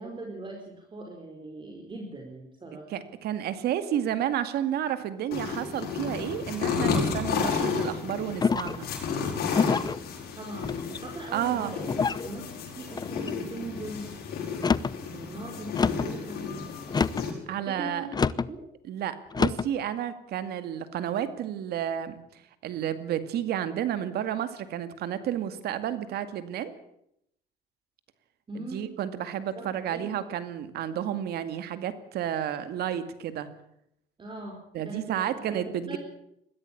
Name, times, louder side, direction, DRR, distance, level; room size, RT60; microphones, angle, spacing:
voice 1, 0.0-2.9 10.4-11.9 12.2-14.1 15.1-16.4 17.5-18.7 28.5-28.8 29.5-30.2 34.2-34.6 34.8-36.0, right 2 dB, 30° right, 1 dB, 4.7 m, -40 dB
voice 2, 2.9-8.9 11.3-11.7 17.5-18.1 18.8-22.2 22.6-26.7 28.6-33.5 34.7-36.0, right 10 dB, 70° right, 11 dB, 2.2 m, -31 dB
sound 1, 5.3-17.3, left 5 dB, 70° left, 7.8 m, -32 dB
sound 2, 8.4-8.9 9.5-10.0 10.6-11.2 11.9-12.3 12.9-13.4 14.5-15.0 15.7-16.1 16.9-17.3 18.1-18.5 19.3-19.7, left 5 dB, 25° left, 0.7 m, -27 dB
21.5 x 15.5 x 8.7 m, 0.76 s
cardioid pair, 110°, 17 cm